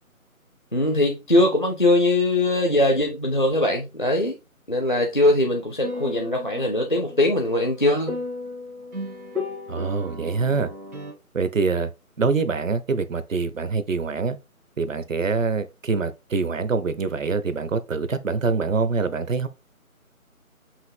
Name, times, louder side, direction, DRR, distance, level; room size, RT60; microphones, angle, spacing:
voice 1, 0.7-4.3 4.7-8.2, left 1 dB, 35° left, 0.5 m, -21 dB
sound 1, 5.8-11.1, left 2 dB, 80° right, 2.2 m, -35 dB
voice 2, 9.7-10.7 11.3-11.9 12.2-14.4 14.8-19.5, right 4 dB, 60° right, 0.7 m, -25 dB
5.6 x 2.4 x 3.5 m
figure-of-eight pair, 155°, 43 cm